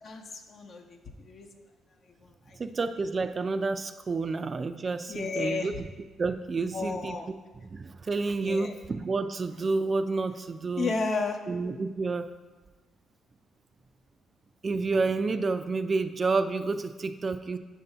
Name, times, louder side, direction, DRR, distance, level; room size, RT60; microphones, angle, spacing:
voice 1, 0.5-1.5 2.2-2.6 5.1-5.8 6.7-7.3 8.4-8.7 10.8-11.4, left 4 dB, 55° left, 2 dB, 0.8 m, -32 dB
voice 2, 2.6-5.9 6.2-7.2 7.5-10.9 11.5-12.3 14.6-17.6, right 3 dB, 35° right, 9 dB, 0.3 m, -29 dB
7.8 x 2.7 x 5.5 m, 1.3 s
cardioid pair, 90°, 0 cm